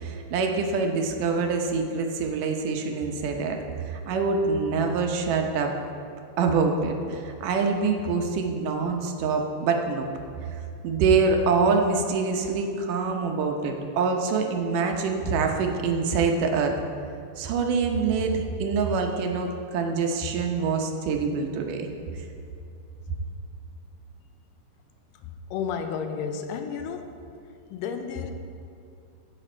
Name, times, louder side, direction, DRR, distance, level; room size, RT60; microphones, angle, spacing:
voice 1, 0.0-3.6 3.8-5.7 6.4-10.1 10.5-16.8 17.4-22.2, right 4 dB, 75° right, 3 dB, 2.5 m, -25 dB
voice 2, 25.2-27.1 27.7-28.3, left 6 dB, 85° left, 6 dB, 2.4 m, -32 dB
16.0 x 7.6 x 4.4 m, 2.5 s
omnidirectional pair, 3.9 m